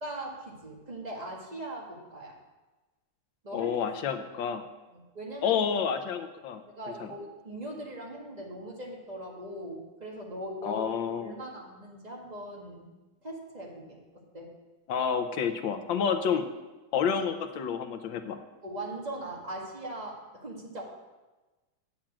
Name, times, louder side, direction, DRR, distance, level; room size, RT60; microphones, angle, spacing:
voice 1, 0.0-2.3 3.4-3.7 4.9-5.7 6.8-10.9 11.2-12.9 13.2-14.5 18.6-20.8, right 1 dB, 20° right, -2 dB, 1.9 m, -40 dB
voice 2, 3.5-4.6 5.4-6.6 7.0-7.1 10.6-11.3 14.9-16.5 16.9-18.4, left 7 dB, 90° left, 9 dB, 1.5 m, -29 dB
8.9 x 7.2 x 7.4 m, 1.2 s
omnidirectional pair, 2.0 m